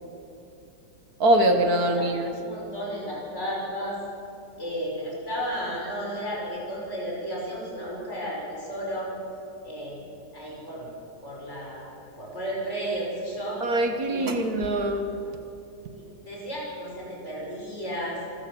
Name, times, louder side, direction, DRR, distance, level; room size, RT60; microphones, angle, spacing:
voice 1, 1.2-2.3 13.6-15.1, right 1 dB, 65° right, 6 dB, 1.8 m, -23 dB
voice 2, 2.3-4.0 4.6-9.1 9.6-10.9 11.2-11.9 12.2-13.6 14.1-14.3 15.9-18.2, equal, 40° left, -4 dB, 6.1 m, -33 dB
25.5 x 14.5 x 7.0 m, 2.7 s
omnidirectional pair, 1.8 m